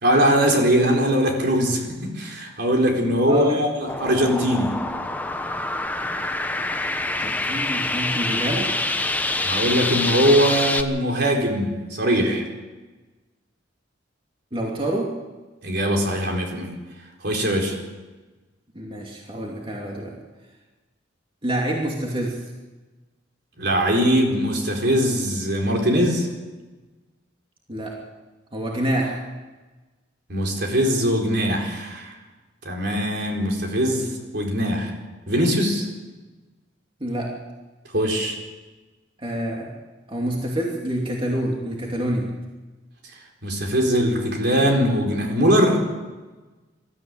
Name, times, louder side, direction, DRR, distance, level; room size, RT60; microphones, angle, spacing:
voice 1, 0.0-4.8 9.4-12.4 15.6-16.7 17.2-17.8 23.6-26.3 30.3-32.2 32.6-34.1 34.3-34.9 35.3-35.9 37.9-38.4 43.4-45.8, equal, 60° right, 1 dB, 4.3 m, -21 dB
voice 2, 3.3-3.6 7.2-8.7 14.5-15.1 18.7-20.1 21.4-22.4 27.7-28.0 28.5-29.2 37.0-37.3 39.2-39.7 40.1-42.3, right 1 dB, 30° right, -2 dB, 2.7 m, -26 dB
sound 1, 3.9-10.8, left 2 dB, 10° left, 1.0 m, -26 dB
21.5 x 13.5 x 9.0 m, 1.2 s
head